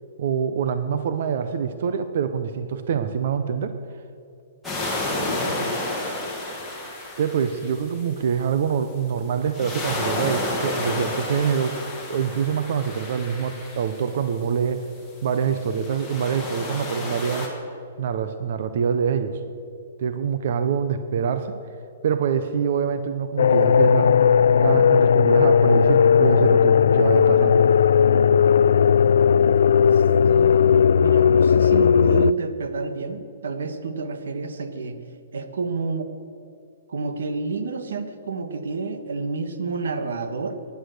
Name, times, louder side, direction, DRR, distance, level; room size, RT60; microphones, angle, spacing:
voice 1, 0.2-3.7 7.2-11.8 12.1-14.9 15.2-17.5 18.0-19.4 20.0-21.5 22.0-24.2 24.6-27.6, right 7 dB, 45° right, 10 dB, 0.7 m, -25 dB
sound 1, 4.6-8.4 9.4-14.4 15.3-17.5, left 2 dB, ahead, 1.9 m, -31 dB
voice 2, 5.3-5.9 29.9-35.0 35.3-36.1 36.9-40.6, right 4 dB, 90° right, 9 dB, 1.4 m, -29 dB
sound 2, 23.4-32.3, left 7 dB, 75° left, 0.3 m, -16 dB
16.0 x 10.5 x 6.6 m, 2.6 s
hypercardioid pair, 180°, 0 cm